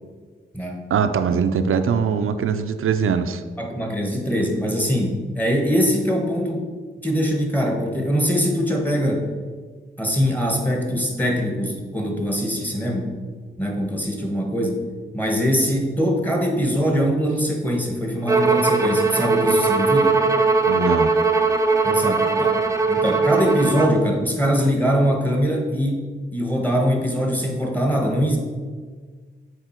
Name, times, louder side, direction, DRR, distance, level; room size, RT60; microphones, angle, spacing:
voice 1, 0.9-3.4 20.7-21.1, right 6 dB, 85° right, 8 dB, 0.4 m, -21 dB
voice 2, 3.6-6.7 7.0-9.3 10.0-13.1 13.6-14.8 15.1-20.2 21.8-22.6 22.9-28.4, equal, 10° left, 1 dB, 1.1 m, -22 dB
Bowed string instrument, 18.3-24.0, right 4 dB, 15° right, 0.5 m, -19 dB
6.7 x 4.3 x 4.4 m, 1.5 s
wide cardioid pair, 125°, 21 cm